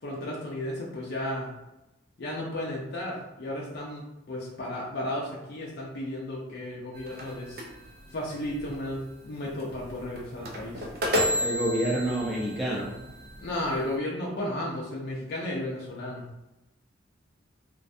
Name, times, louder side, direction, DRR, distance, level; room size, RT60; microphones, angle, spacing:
voice 1, 0.0-1.5 2.2-7.6 8.1-10.9 13.4-16.2, left 1 dB, 55° left, -4 dB, 0.5 m, -34 dB
sound 1, 6.9-14.0, equal, 50° right, 0.4 m, -33 dB
voice 2, 11.4-12.9, right 1 dB, ahead, -5 dB, 0.5 m, -28 dB
2.5 x 2.1 x 2.6 m, 0.95 s
head